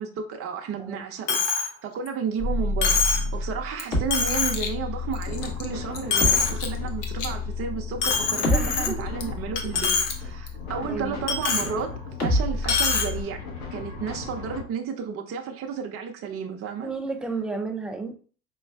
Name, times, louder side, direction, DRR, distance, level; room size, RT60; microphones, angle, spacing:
voice 1, 0.0-3.0 3.3-13.4 13.7-16.9, right 6 dB, 35° right, 0.7 m, -32 dB
Coin (dropping), 1.3-1.7 2.1-2.2 2.8-3.3 3.8-3.9 4.1-4.7 5.1-5.6 5.9-6.7 7.0-7.3 8.0-9.2 9.6-10.1 10.5-10.6 11.3-11.7 12.6-13.1, left 5 dB, 60° left, 1.0 m, -24 dB
sound 1, 2.4-11.6 12.2-13.2, left 1 dB, 35° left, 1.5 m, -29 dB
sound 2, 5.2-14.6, left 4 dB, 80° left, 1.4 m, -38 dB
voice 2, 8.5-9.1 10.8-11.2 16.8-18.2, right 3 dB, ahead, 0.3 m, -32 dB
5.1 x 3.1 x 2.3 m
hypercardioid pair, 80°, 42 cm